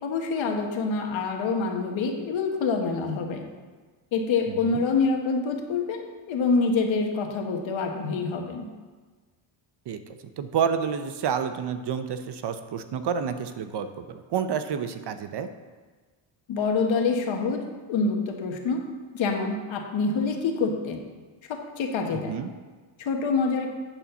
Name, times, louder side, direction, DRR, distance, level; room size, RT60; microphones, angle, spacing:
voice 1, 0.0-3.4 4.1-6.0 6.3-8.7 16.5-17.6 17.9-18.8 19.1-21.0 21.5-22.3 23.0-23.7, left 4 dB, 65° left, 3 dB, 1.4 m, -26 dB
voice 2, 4.5-4.8 9.9-15.5 22.1-22.5, right 7 dB, 55° right, 10 dB, 0.7 m, -29 dB
8.6 x 4.2 x 6.9 m, 1.4 s
cardioid pair, 100°, 50 cm